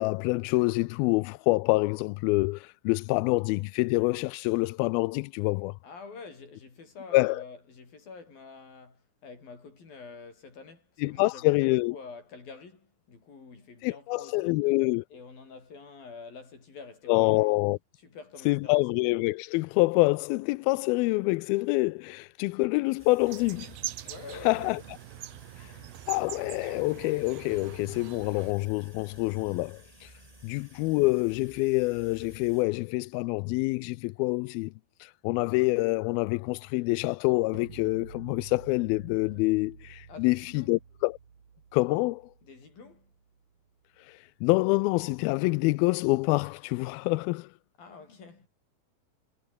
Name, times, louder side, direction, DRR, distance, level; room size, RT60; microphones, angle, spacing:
voice 1, 0.0-5.8 7.1-7.4 11.0-12.0 13.8-15.0 17.1-17.8 18.5-23.8 24.4-24.8 25.6-25.7 26.1-30.1 30.4-34.7 35.0-41.2 41.7-42.3 44.0-47.5, left 23 dB, 85° left, 2.3 m, -26 dB
voice 2, 5.8-11.5 11.9-14.7 15.1-17.6 18.0-18.9 24.0-24.8 40.1-40.8 42.4-43.1 47.8-48.5, left 4 dB, 65° left, 8.3 m, -47 dB
sound 1, 23.0-32.6, right 1 dB, 10° right, 4.7 m, -54 dB
sound 2, 23.3-28.5, right 14 dB, 70° right, 2.9 m, -43 dB
sound 3, 37.5-43.5, right 6 dB, 45° right, 4.1 m, -50 dB
omnidirectional pair, 4.5 m